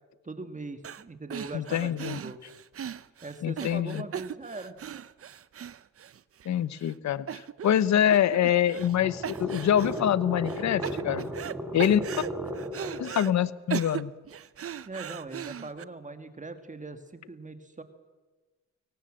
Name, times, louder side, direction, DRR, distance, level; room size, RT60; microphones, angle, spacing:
voice 1, 0.2-2.4 3.2-4.8 14.9-17.8, right 3 dB, 25° right, 8 dB, 2.1 m, -40 dB
sound 1, 0.8-1.0 1.3-6.5 6.8-6.9 7.3-7.8 8.1-9.0 9.2-10.0 10.5-11.5 11.8-13.3 13.7-15.8, right 9 dB, 50° right, 0.8 m, -38 dB
voice 2, 1.5-2.2 3.4-4.0 6.5-11.3 11.7-12.0 13.0-14.1, left 10 dB, 65° left, 17 dB, 0.9 m, -25 dB
sound 2, 8.2-13.2, equal, 5° right, 4.0 m, -36 dB
23.0 x 18.0 x 7.6 m, 1.3 s
cardioid pair, 80°, 30 cm